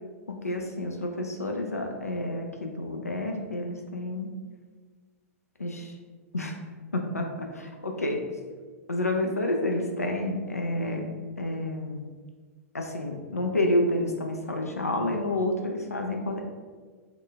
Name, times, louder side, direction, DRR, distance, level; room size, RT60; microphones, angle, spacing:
voice 1, 0.3-4.3 5.6-5.9 6.3-6.6 6.9-8.3 8.9-11.1 11.4-12.0 12.7-16.4, left 1 dB, 85° left, 2 dB, 0.4 m, -29 dB
3.6 x 2.3 x 3.3 m, 1.5 s
figure-of-eight pair, 105°, 8 cm